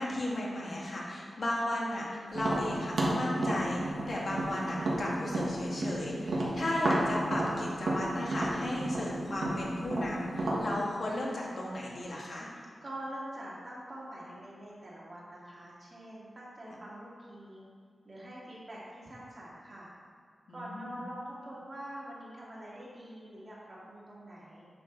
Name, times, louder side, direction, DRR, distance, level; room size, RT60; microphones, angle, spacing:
voice 1, 0.0-12.5 16.7-16.8 20.5-20.9, left 1 dB, 55° left, -4 dB, 1.8 m, -35 dB
Tap, 2.3-6.0 6.3-10.7, right 1 dB, 70° right, 1.6 m, -31 dB
voice 2, 12.8-17.7 18.0-19.9 20.5-24.6, right 1 dB, 35° right, -8 dB, 2.2 m, -45 dB
9.5 x 6.3 x 3.9 m, 2.1 s
wide cardioid pair, 135°, 0 cm